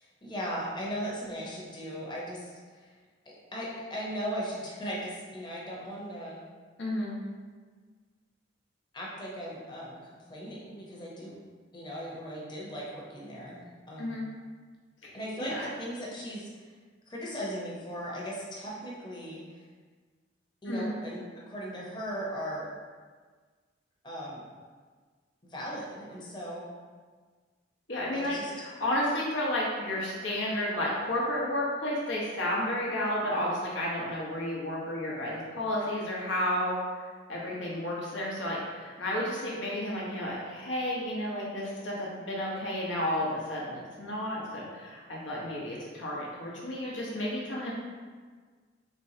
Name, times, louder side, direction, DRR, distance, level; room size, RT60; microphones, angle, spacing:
voice 1, 0.0-2.9 3.2-6.4 8.9-11.4 11.7-14.2 15.1-16.7 17.1-19.6 20.6-22.7 24.0-24.4 25.4-26.7 28.1-28.5, equal, 25° left, -5 dB, 0.8 m, -38 dB
voice 2, 6.8-7.1 14.0-14.3 15.0-15.7 20.7-20.9 27.9-37.0 37.3-47.7, left 1 dB, 85° left, -5 dB, 1.0 m, -32 dB
4.4 x 3.3 x 2.8 m, 1.5 s
head